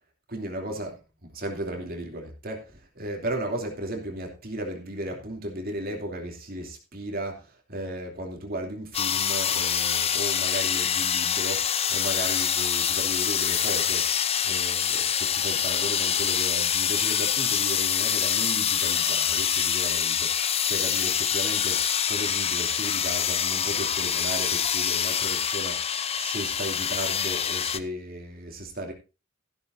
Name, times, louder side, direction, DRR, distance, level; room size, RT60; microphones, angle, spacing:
voice 1, 0.3-1.0 1.2-14.1 14.4-28.9, right 1 dB, 45° right, 2.8 m, -35 dB
sound 1, 8.9-27.8, left 8 dB, 30° left, 0.7 m, -25 dB
14.0 x 13.0 x 2.7 m
head